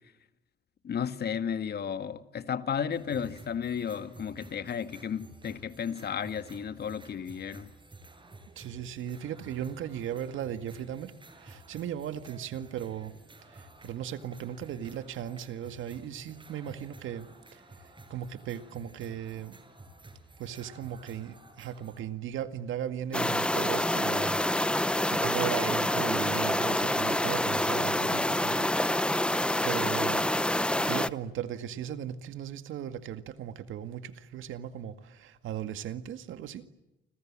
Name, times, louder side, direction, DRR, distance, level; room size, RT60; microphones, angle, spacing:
voice 1, 0.8-7.7, left 7 dB, 55° left, 2.0 m, -33 dB
sound 1, 2.9-22.0, right 2 dB, 25° right, 6.9 m, -52 dB
voice 2, 8.6-13.1 13.5-17.6 18.1-19.6 20.4-24.4 25.1-28.7 29.6-30.3 30.7-36.6, right 10 dB, 80° right, 2.0 m, -37 dB
sound 2, 23.1-31.1, left 1 dB, 5° left, 0.9 m, -27 dB
29.5 x 26.0 x 7.5 m
cardioid pair, 90°, 20 cm